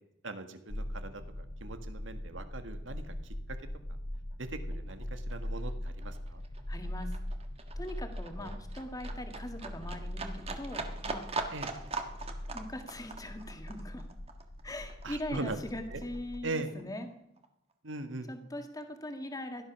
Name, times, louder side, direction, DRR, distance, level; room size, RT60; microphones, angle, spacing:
voice 1, 0.2-3.6 4.4-6.4 8.4-8.6 11.5-11.7 15.0-15.6 15.9-16.0 16.4-16.7 17.8-18.3, right 2 dB, 90° right, 8 dB, 1.8 m, -40 dB
sound 1, 0.7-16.5, left 1 dB, 35° left, 0.9 m, -41 dB
Livestock farm animals working animals, 4.3-4.4 4.7-15.7 16.0-17.0 17.4-17.5, right 3 dB, 30° right, 1.5 m, -41 dB
voice 2, 6.7-7.1 7.8-11.3 12.5-14.1 14.6-17.1 18.3-19.6, left 1 dB, 20° left, 6 dB, 1.8 m, -41 dB
17.5 x 12.0 x 6.1 m, 0.80 s
head